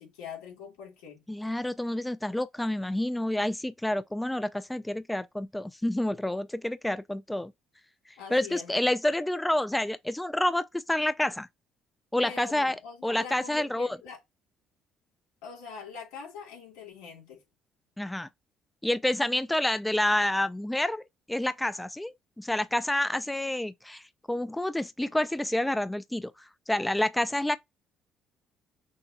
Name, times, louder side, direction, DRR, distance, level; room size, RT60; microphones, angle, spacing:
voice 1, 0.0-1.2 8.2-8.8 12.2-14.2 15.4-17.4, left 5 dB, 90° left, 2.6 m, -43 dB
voice 2, 1.3-7.5 8.3-11.5 12.1-12.7 13.0-13.9 18.0-18.3 18.8-21.0 21.3-26.3 26.7-27.6, left 1 dB, 10° left, 0.4 m, -28 dB
6.3 x 2.2 x 2.9 m
supercardioid pair, 70°, 0 cm